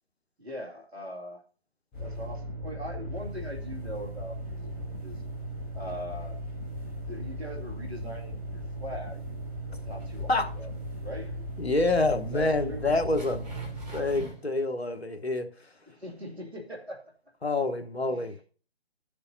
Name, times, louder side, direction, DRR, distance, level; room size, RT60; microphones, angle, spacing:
voice 1, 0.4-1.4 2.0-5.2 5.7-6.4 7.0-9.2 9.8-10.7 11.0-11.4 12.3-12.9 15.9-17.1 18.1-18.3, equal, 80° right, 2.5 m, -41 dB
sound 1, 1.9-14.3, equal, 5° left, 0.7 m, -37 dB
sound 2, 9.7-10.4 10.7-10.9 11.5-11.6 12.0-12.1 12.8-14.5, right 3 dB, 40° right, 3.0 m, -46 dB
voice 2, 11.6-13.5 13.9-15.7 17.4-18.5, left 2 dB, 80° left, 1.2 m, -27 dB
14.5 x 6.8 x 2.7 m
figure-of-eight pair, 145°, 31 cm